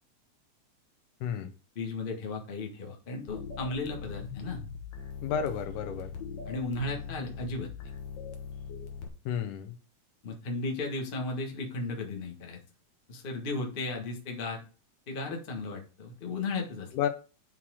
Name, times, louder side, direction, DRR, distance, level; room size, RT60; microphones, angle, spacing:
voice 1, 1.2-1.5 5.2-6.1 9.3-9.8 16.9-17.1, left 8 dB, 85° left, 8 dB, 2.4 m, -31 dB
voice 2, 1.7-4.6 6.5-7.9 10.2-12.6 13.1-14.6 15.1-16.9, left 3 dB, 40° left, 1 dB, 0.7 m, -35 dB
sound 1, 3.3-9.1, left 6 dB, 65° left, 1.1 m, -41 dB
5.8 x 4.6 x 6.2 m, 0.35 s
omnidirectional pair, 3.6 m